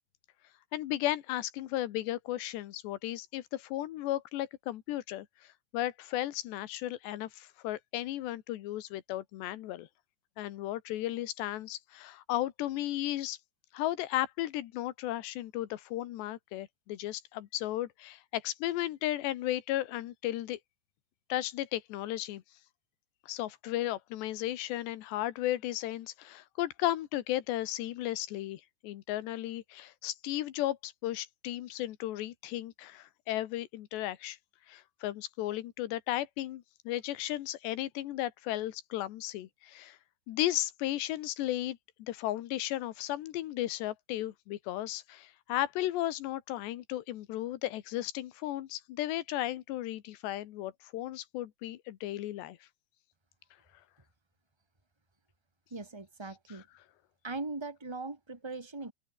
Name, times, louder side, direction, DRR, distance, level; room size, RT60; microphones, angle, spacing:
voice 1, 0.7-9.9 10.4-13.4 13.7-20.6 21.3-22.4 23.3-34.4 34.7-40.0 40.3-52.6 56.5-56.6, left 14 dB, 90° left, 3.5 m, -35 dB
voice 2, 55.7-56.7 57.2-58.9, right 3 dB, 5° right, 2.6 m, -40 dB
open air
omnidirectional pair, 4.9 m